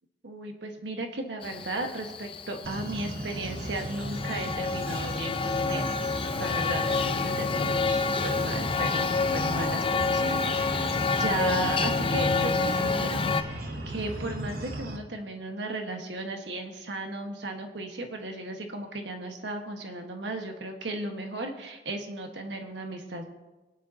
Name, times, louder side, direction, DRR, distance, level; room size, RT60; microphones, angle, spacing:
voice 1, 0.2-5.8 6.4-23.3, right 2 dB, 75° right, 4 dB, 1.5 m, -35 dB
Male speech man speaking, 1.4-13.4, left 4 dB, 30° left, 0.5 m, -28 dB
sound 1, 2.6-15.0, right 1 dB, 55° right, 1.0 m, -38 dB
21.5 x 9.6 x 2.9 m, 1.2 s
head